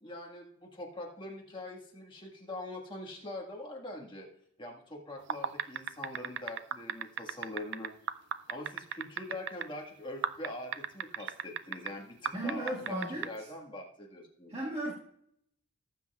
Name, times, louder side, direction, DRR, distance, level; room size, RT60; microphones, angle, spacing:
voice 1, 0.0-4.3 4.6-7.9 8.5-14.5, left 1 dB, 20° left, 0 dB, 1.6 m, -43 dB
sound 1, 5.2-9.7 10.2-11.9 12.3-13.3, right 9 dB, 55° right, 0.4 m, -34 dB
voice 2, 12.3-13.5 14.5-14.9, right 1 dB, 30° right, -5 dB, 1.6 m, -35 dB
18.0 x 7.8 x 2.3 m, 0.71 s
head